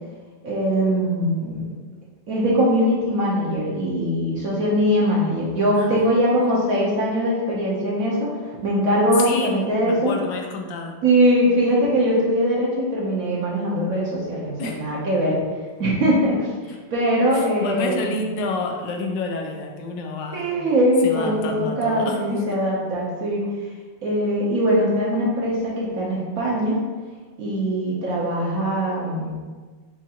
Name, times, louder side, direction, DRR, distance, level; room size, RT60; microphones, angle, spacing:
voice 1, 0.4-1.7 2.3-8.3 8.6-10.1 11.0-15.4 15.8-16.5 16.9-18.2 20.3-23.4 24.0-26.8 27.4-29.3, equal, 55° right, -5 dB, 1.1 m, -21 dB
voice 2, 9.2-11.0 14.6-14.8 16.7-16.8 17.3-20.6 21.0-22.6, left 3 dB, 75° left, 2 dB, 1.3 m, -29 dB
7.1 x 2.5 x 2.9 m, 1.4 s
omnidirectional pair, 2.0 m